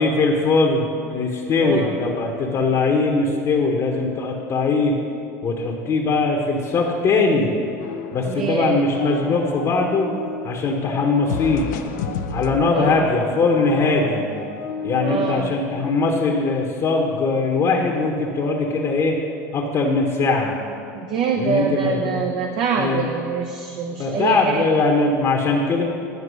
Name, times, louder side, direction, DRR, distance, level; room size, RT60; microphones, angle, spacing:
voice 1, 0.0-4.9 5.4-7.5 8.1-10.1 10.4-11.7 12.3-14.3 14.8-19.2 19.5-20.5 21.3-22.2 22.7-23.0 24.0-25.8, left 3 dB, 40° left, 0 dB, 1.0 m, -20 dB
voice 2, 1.6-2.0 8.3-8.8 12.7-13.1 15.0-15.6 20.9-24.7, right 5 dB, 50° right, 3 dB, 0.7 m, -25 dB
sound 1, 7.8-8.5 8.8-10.5 11.3-15.4, left 5 dB, 75° left, 0.6 m, -32 dB
9.6 x 4.6 x 6.3 m, 2.6 s
hypercardioid pair, 90°, 10 cm